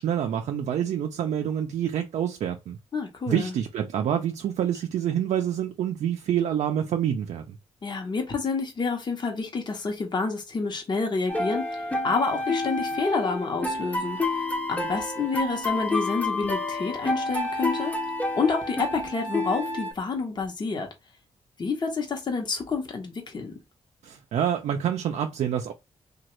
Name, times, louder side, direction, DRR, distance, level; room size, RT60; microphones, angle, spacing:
voice 1, 0.0-2.8 3.3-7.5 24.0-25.7, right 9 dB, 75° right, 0.4 m, -27 dB
voice 2, 2.9-3.5 7.8-18.0 18.3-20.9 21.6-23.5, left 4 dB, 40° left, 0.8 m, -29 dB
sound 1, 11.3-19.9, left 2 dB, 10° left, 0.7 m, -29 dB
3.0 x 2.3 x 3.0 m
cardioid pair, 95°, 12 cm